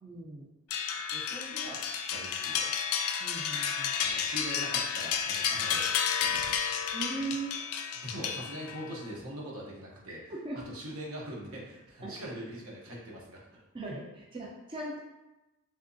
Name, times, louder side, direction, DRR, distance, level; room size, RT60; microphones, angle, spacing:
voice 1, 0.0-0.5 3.2-3.9 6.9-7.6 10.1-10.2 10.4-10.6 12.0-12.2 13.7-15.0, right 3 dB, 25° right, -4 dB, 0.4 m, -38 dB
sound 1, 0.7-8.9, left 7 dB, 85° left, 0.4 m, -31 dB
voice 2, 1.1-1.8 2.1-2.7 4.0-5.9 6.2-6.8 8.0-10.2 10.5-13.7, right 1 dB, 75° right, -4 dB, 0.9 m, -42 dB
3.5 x 2.8 x 2.6 m, 1.0 s
head